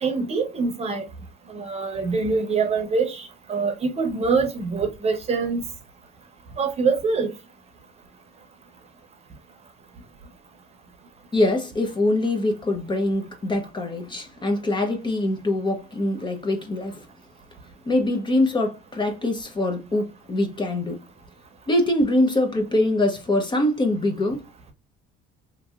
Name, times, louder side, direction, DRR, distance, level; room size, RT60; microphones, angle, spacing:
voice 1, 0.0-1.1 1.5-5.6 6.6-7.3, right 4 dB, 30° right, 0.9 m, -24 dB
voice 2, 11.3-17.0 17.9-21.0 21.7-24.4, left 1 dB, 25° left, 0.7 m, -23 dB
3.0 x 2.7 x 2.3 m
cardioid pair, 110°, 20 cm